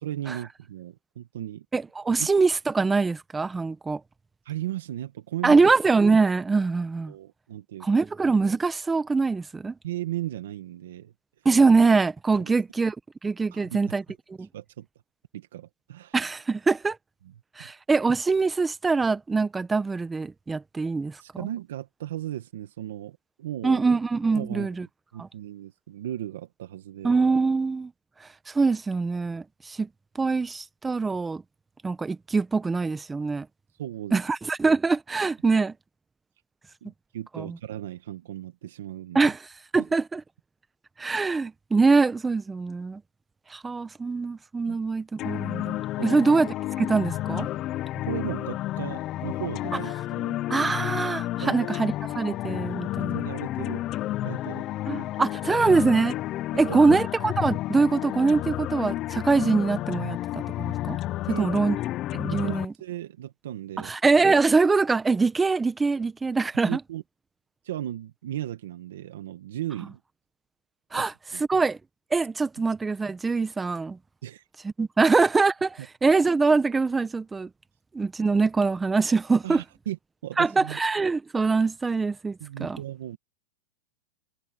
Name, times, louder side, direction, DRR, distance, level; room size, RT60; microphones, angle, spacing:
voice 1, 0.0-1.6 2.2-2.3 4.4-5.6 7.1-7.9 9.8-11.1 12.4-12.5 13.5-14.0 14.5-14.9 15.3-16.2 21.2-23.8 24.3-24.7 25.1-27.1 33.8-34.2 36.8-39.3 44.7-44.8 46.0-46.2 48.0-50.4 51.4-51.7 53.1-53.9 54.2-55.1 56.5-57.0 61.3-61.7 62.3-63.9 66.7-67.0 67.6-70.0 70.9-71.0 71.3-71.4 74.2-74.4 75.8-75.9 79.4-80.0 80.2-80.8 82.4-83.2, right 12 dB, 80° right, 1.5 m, -36 dB
voice 2, 1.7-4.0 5.4-7.1 7.8-9.7 11.4-12.9 13.2-14.0 14.3-14.5 16.1-17.0 17.6-21.1 23.6-24.9 25.2-25.3 27.0-27.9 28.5-29.9 30.2-31.4 31.8-33.5 34.1-35.7 37.3-37.6 39.1-39.4 39.7-40.2 41.0-43.0 43.5-47.5 50.5-53.3 54.9-56.1 56.6-61.0 61.3-61.8 62.1-62.7 63.8-66.8 70.9-71.1 71.5-71.8 72.1-74.0 74.6-77.5 77.9-79.6 80.4-82.8, right 4 dB, 10° right, 0.9 m, -23 dB
sound 1, 45.2-62.6, left 15 dB, 35° left, 0.4 m, -31 dB
supercardioid pair, 150°, 0 cm